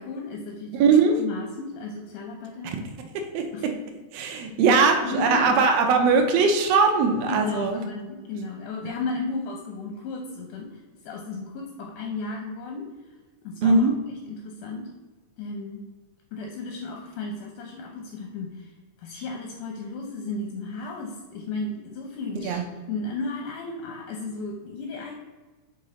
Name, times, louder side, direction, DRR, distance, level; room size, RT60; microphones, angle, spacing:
voice 1, 0.0-0.8 1.2-2.7 3.5-3.7 4.7-5.6 7.3-12.9 13.4-13.9 14.3-14.9 15.4-15.9 16.3-18.7 19.0-25.2, left 3 dB, 80° left, 1 dB, 2.2 m, -34 dB
voice 2, 0.7-1.2 2.7-2.8 3.3-3.7 4.1-7.8 13.6-13.9 22.4-22.6, right 4 dB, 85° right, 4 dB, 1.4 m, -20 dB
5.3 x 3.9 x 5.6 m, 1.3 s
omnidirectional pair, 3.8 m